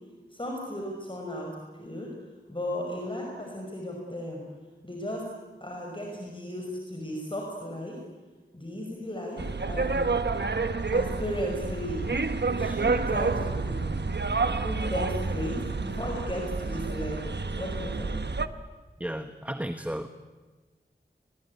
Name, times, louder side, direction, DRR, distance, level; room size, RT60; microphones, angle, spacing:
voice 1, 0.3-2.1 2.5-4.4 4.8-5.3 5.6-8.0 8.5-10.1 10.9-12.1 12.4-13.8 14.6-18.2, left 1 dB, 30° left, 0 dB, 5.5 m, -35 dB
sound 1, 9.4-18.5, right 4 dB, 75° right, 1.2 m, -29 dB
voice 2, 19.0-20.1, equal, 10° right, 8 dB, 1.3 m, -33 dB
28.0 x 21.5 x 9.8 m, 1.3 s
wide cardioid pair, 60°, 18 cm